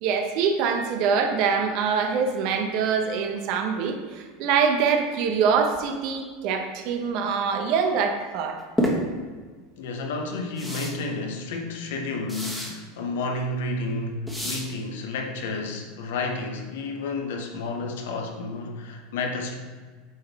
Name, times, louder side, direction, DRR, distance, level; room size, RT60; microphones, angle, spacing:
voice 1, 0.0-8.6, right 6 dB, 60° right, 5 dB, 0.8 m, -24 dB
sound 1, 8.8-9.0 10.6-10.9 12.3-12.7 14.3-14.6, equal, 5° left, 1.4 m, -27 dB
voice 2, 9.8-19.5, left 3 dB, 80° left, 3 dB, 0.9 m, -31 dB
8.4 x 3.9 x 3.4 m, 1.4 s
supercardioid pair, 110°, 0 cm